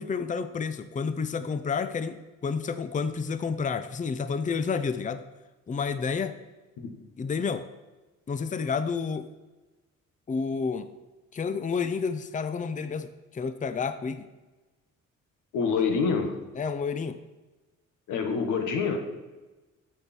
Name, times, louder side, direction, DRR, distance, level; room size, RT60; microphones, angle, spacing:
voice 1, 0.0-5.2 5.7-6.3 7.2-7.7 8.3-9.3 10.3-10.9 11.3-14.3 16.6-17.2, left 5 dB, 25° left, 11 dB, 0.6 m, -30 dB
voice 2, 15.5-16.4 18.1-19.0, left 5 dB, 85° left, 5 dB, 1.6 m, -26 dB
14.0 x 6.5 x 4.4 m, 1.2 s
cardioid pair, 90°, 30 cm